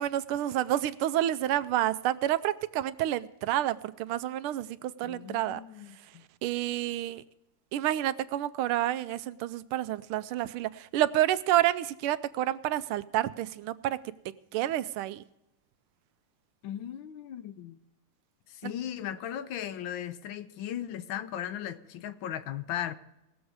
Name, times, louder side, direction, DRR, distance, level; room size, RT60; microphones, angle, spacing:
voice 1, 0.0-5.6 5.9-6.0 6.4-7.2 7.7-14.0 14.5-15.2 18.6-18.7, right 13 dB, 90° right, 1.5 m, -29 dB
voice 2, 5.0-6.2 16.6-17.8 18.5-23.0, left 10 dB, 75° left, 1.4 m, -37 dB
19.5 x 7.1 x 4.8 m
omnidirectional pair, 2.3 m